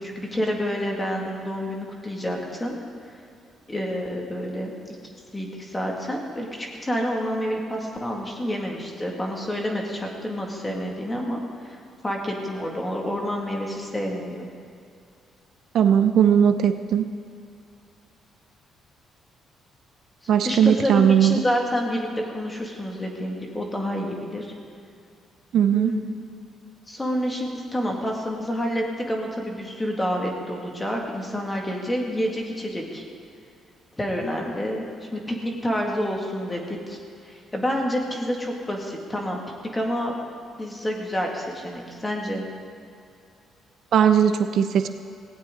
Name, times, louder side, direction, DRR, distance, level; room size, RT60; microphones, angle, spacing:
voice 1, 0.0-2.8 3.7-5.0 5.3-11.8 12.0-14.5 20.3-22.1 22.3-24.5 25.7-26.2 26.9-33.0 34.0-37.0 37.2-39.4 39.7-40.1 40.6-42.5, equal, 10° left, 0 dB, 2.2 m, -28 dB
voice 2, 15.7-17.1 20.3-21.4 25.5-26.0 43.9-44.9, right 8 dB, 55° right, 9 dB, 0.5 m, -18 dB
18.0 x 17.0 x 3.9 m, 2.3 s
cardioid pair, 155°, 0 cm